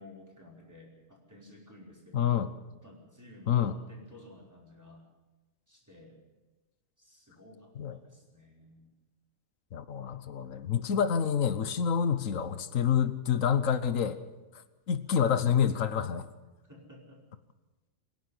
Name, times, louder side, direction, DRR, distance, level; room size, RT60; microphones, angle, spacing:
voice 1, 0.0-2.3 2.8-5.1 5.7-6.2 7.0-8.9 15.1-15.3 16.7-17.2, left 1 dB, 15° right, -2 dB, 5.1 m, -53 dB
voice 2, 2.1-2.5 3.5-3.7 7.8-8.0 9.7-14.2 14.9-16.2, left 8 dB, 85° left, 12 dB, 1.4 m, -27 dB
25.5 x 11.0 x 9.8 m, 1.1 s
omnidirectional pair, 1.3 m